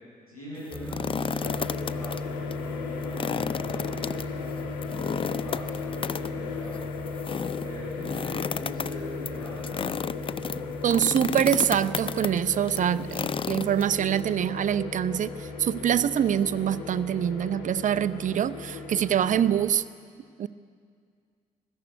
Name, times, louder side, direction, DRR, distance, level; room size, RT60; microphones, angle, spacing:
voice 1, 0.3-6.8 7.5-10.6, equal, 90° left, -9 dB, 7.8 m, -42 dB
sound 1, 0.6-2.2 2.5-2.6 3.0-14.2, left 6 dB, 30° left, 0.5 m, -33 dB
sound 2, 0.7-19.7, left 2 dB, 10° left, 2.1 m, -39 dB
sound 3, 1.4-19.6, left 6 dB, 70° left, 1.3 m, -38 dB
voice 2, 10.8-19.8 20.4-20.5, right 9 dB, 45° right, 14 dB, 0.7 m, -25 dB
21.0 x 13.5 x 9.4 m, 2.1 s
figure-of-eight pair, 40°, 18 cm